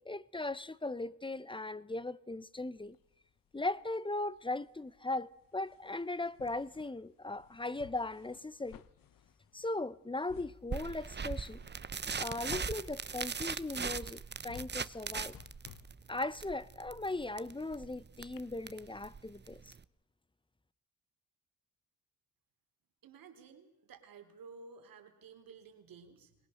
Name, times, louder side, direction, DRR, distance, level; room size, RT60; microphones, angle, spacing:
voice 1, 0.0-3.0 3.5-8.8 9.5-11.6 12.2-15.4 16.1-19.7, left 2 dB, 15° left, 1.0 m, -38 dB
sound 1, 2.8-3.9 4.2-18.0 18.4-18.5, left 9 dB, 70° left, 1.2 m, -56 dB
sound 2, 10.7-19.8, right 5 dB, 30° right, 0.9 m, -40 dB
voice 2, 23.0-26.4, right 5 dB, 75° right, 3.6 m, -54 dB
23.5 x 20.0 x 6.5 m
cardioid pair, 65°, 34 cm